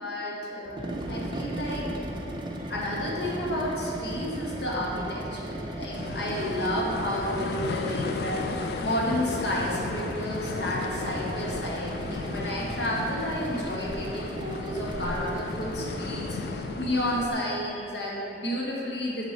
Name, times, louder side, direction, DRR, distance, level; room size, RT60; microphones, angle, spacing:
voice 1, 0.0-1.9 2.7-19.2, left 1 dB, 85° left, -4 dB, 1.3 m, -31 dB
sound 1, 0.7-17.1, right 1 dB, 25° right, 0.5 m, -36 dB
sound 2, 5.9-17.3, left 4 dB, 65° left, 0.3 m, -35 dB
7.3 x 3.6 x 5.3 m, 3.0 s
head